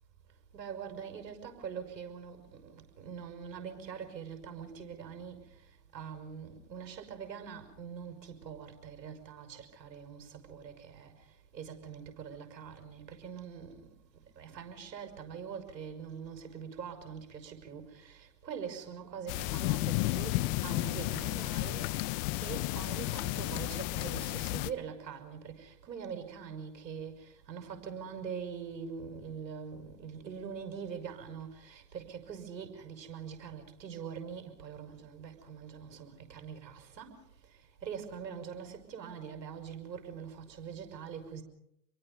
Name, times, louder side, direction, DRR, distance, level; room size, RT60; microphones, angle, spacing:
voice 1, 0.5-5.4 5.9-11.1 11.5-13.8 14.4-18.2 18.4-21.9 22.4-27.1 27.5-37.1 37.8-41.4, right 7 dB, 85° right, 6.1 m, -43 dB
sound 1, 19.3-24.7, left 18 dB, 50° left, 1.3 m, -32 dB
29.0 x 23.5 x 5.4 m
hypercardioid pair, 100°, 49 cm